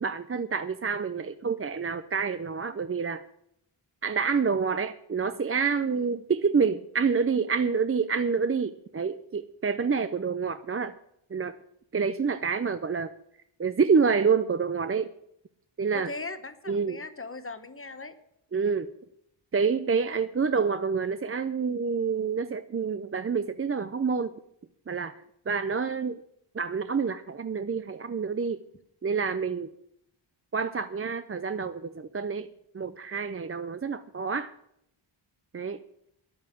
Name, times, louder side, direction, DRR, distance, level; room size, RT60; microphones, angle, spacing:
voice 1, 0.0-3.2 4.0-10.9 11.3-11.6 11.9-13.1 13.6-15.1 15.8-16.1 16.7-17.0 18.5-18.9 19.5-24.3 24.9-25.2 25.5-26.2 26.5-28.6 29.0-29.7 30.5-32.5 32.7-34.5 35.5-35.8, right 5 dB, 30° right, 11 dB, 0.5 m, -27 dB
voice 2, 15.9-18.1, left 3 dB, 25° left, 12 dB, 1.0 m, -39 dB
11.0 x 8.7 x 9.0 m, 0.76 s
wide cardioid pair, 105°, 49 cm